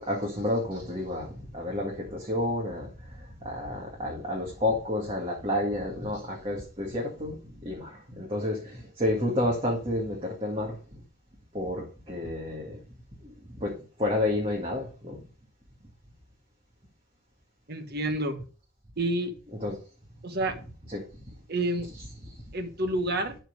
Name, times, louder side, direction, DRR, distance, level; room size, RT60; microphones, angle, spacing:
voice 1, 0.0-7.4 7.6-10.8 11.5-12.8 13.2-13.3 13.6-13.7 14.0-15.2 19.6-19.8 20.9-21.0 22.2-22.3, left 1 dB, 25° right, 2.0 m, -30 dB
voice 2, 17.7-18.4 19.0-19.3 20.2-20.6 21.5-21.9 22.5-23.4, right 1 dB, 45° right, 1.3 m, -29 dB
12.0 x 4.5 x 5.2 m
head